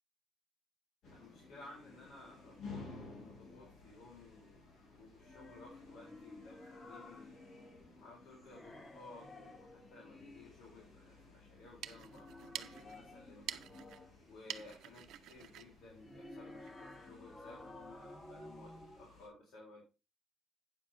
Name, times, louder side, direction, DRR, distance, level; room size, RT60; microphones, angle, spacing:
sound 1, 1.0-19.3, left 3 dB, 65° left, 6.2 m, -56 dB
voice 1, 1.1-7.4 8.0-13.6 14.2-19.8, left 2 dB, 85° left, -3 dB, 3.9 m, -57 dB
sound 2, 5.2-8.1 8.4-10.7 11.8-14.4 15.8-19.1, left 2 dB, 15° left, 1.2 m, -54 dB
sound 3, 11.5-16.8, right 11 dB, 85° right, 0.7 m, -49 dB
9.4 x 7.3 x 4.2 m, 0.29 s
cardioid pair, 145°, 0 cm